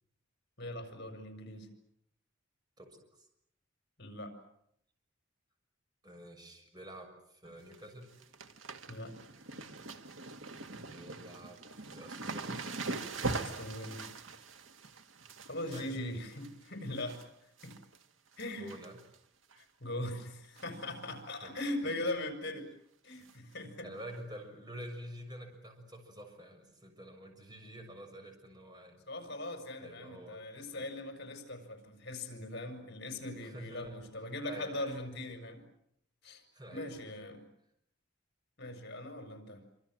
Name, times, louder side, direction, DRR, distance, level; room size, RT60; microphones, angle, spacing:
voice 1, 0.6-1.7 4.0-4.3 8.8-9.1 13.3-14.1 15.4-17.8 18.4-18.7 19.6-22.7 23.0-23.9 29.1-35.6 36.2-36.4 36.7-37.4 38.6-39.6, left 1 dB, 55° left, 7 dB, 6.1 m, -40 dB
voice 2, 2.8-3.3 6.0-8.1 10.7-12.6 15.6-16.0 18.6-19.0 21.4-21.6 22.0-22.1 23.8-29.0 29.8-30.9 33.4-34.0 34.4-35.0 36.5-37.0, right 1 dB, 20° right, 4 dB, 6.7 m, -48 dB
sound 1, 7.4-7.8 8.0-17.2 17.6-18.0 18.3-19.2 19.5-19.6 20.6-20.8 21.1-21.2 21.6-21.7 23.2-23.3 24.1-24.2, right 3 dB, 90° right, 1.9 m, -42 dB
27.0 x 26.5 x 7.7 m, 0.75 s
head